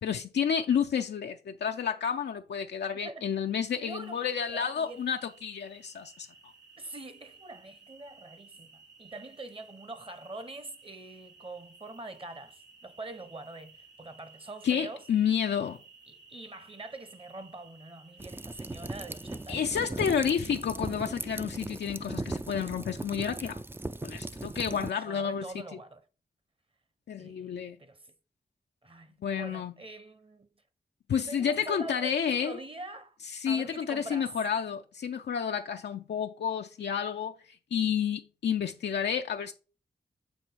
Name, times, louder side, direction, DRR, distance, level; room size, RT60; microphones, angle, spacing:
voice 1, 0.0-6.3 14.6-15.8 19.5-23.6 24.0-25.6 27.1-27.8 29.2-29.7 31.1-32.6 33.3-39.5, left 7 dB, 80° left, 0.4 m, -30 dB
voice 2, 2.9-3.2 3.8-5.0 6.8-15.0 16.1-20.0 24.3-24.8 25.0-26.0 27.2-28.1 28.8-30.5 31.3-33.2 33.4-34.3, right 2 dB, 30° right, 0.9 m, -44 dB
sound 1, 4.0-19.4, right 4 dB, 90° right, 1.4 m, -56 dB
sound 2, 18.2-24.9, right 2 dB, 15° right, 0.3 m, -38 dB
7.6 x 3.3 x 4.6 m
cardioid pair, 50°, 18 cm